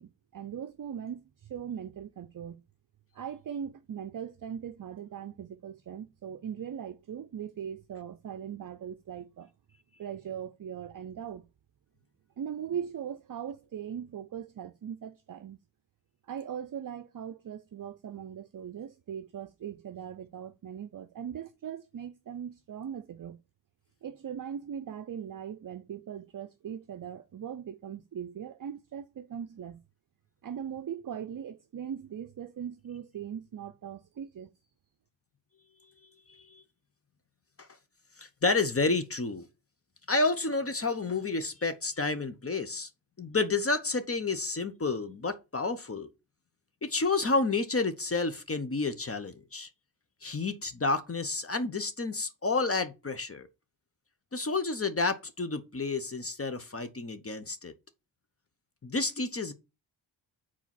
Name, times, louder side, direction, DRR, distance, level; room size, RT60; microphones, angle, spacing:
voice 1, 0.0-2.6 3.1-9.5 10.0-11.5 12.4-15.6 16.3-23.4 24.0-29.8 30.4-34.5, right 8 dB, 45° right, 0.6 m, -40 dB
voice 2, 38.2-39.5 40.1-42.9 43.2-46.1 46.8-49.7 50.2-53.5 54.3-57.7 58.8-59.5, left 3 dB, 30° left, 0.9 m, -30 dB
4.9 x 4.3 x 5.8 m
cardioid pair, 70°, 45 cm